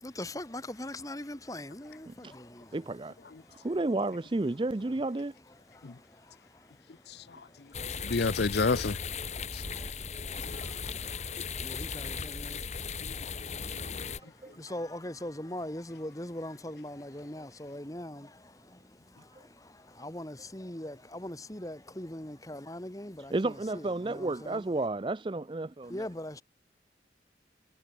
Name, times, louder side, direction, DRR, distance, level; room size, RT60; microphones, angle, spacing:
voice 1, 0.0-2.1 2.3-2.4 11.6-12.6 14.6-18.3 20.0-24.6 25.9-26.4, left 1 dB, 20° left, 1.7 m, -40 dB
voice 2, 2.7-3.1 3.6-5.3 14.4-14.6 19.4-19.5 23.3-26.1, right 2 dB, 25° right, 0.5 m, -32 dB
voice 3, 7.1-7.7 8.0-9.0 9.5-9.6 10.4-10.6 13.0-13.2, left 4 dB, 70° left, 0.6 m, -30 dB
sound 1, 7.7-14.2, left 5 dB, 40° left, 1.9 m, -37 dB
head